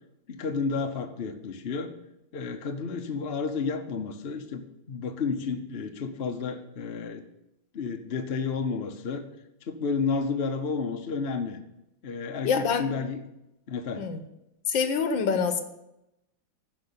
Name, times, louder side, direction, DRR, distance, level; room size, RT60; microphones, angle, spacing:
voice 1, 0.3-1.9 2.3-7.2 7.7-9.2 9.7-11.6 12.0-13.2 13.7-14.1, left 5 dB, 45° left, 5 dB, 0.8 m, -31 dB
voice 2, 12.4-12.8 14.0-14.2 14.7-15.6, left 6 dB, 75° left, 8 dB, 1.7 m, -25 dB
11.0 x 5.4 x 8.4 m, 0.87 s
omnidirectional pair, 2.2 m